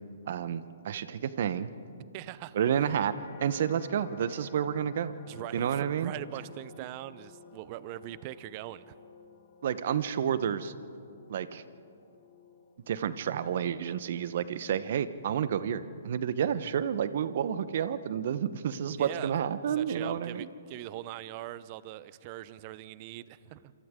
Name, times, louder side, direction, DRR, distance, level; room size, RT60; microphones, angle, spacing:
voice 1, 0.3-1.7 2.5-3.1 3.4-5.1 5.5-6.1 9.6-10.7 11.3-11.6 12.9-20.5, right 8 dB, 55° right, 1.0 m, -30 dB
voice 2, 2.1-2.6 5.3-8.9 19.0-19.3 19.7-23.7, right 15 dB, 40° right, 0.7 m, -42 dB
sound 1, 3.1-18.3 18.8-19.3, left 3 dB, 60° left, 2.9 m, -55 dB
27.5 x 26.0 x 3.8 m
hypercardioid pair, 135°, 0 cm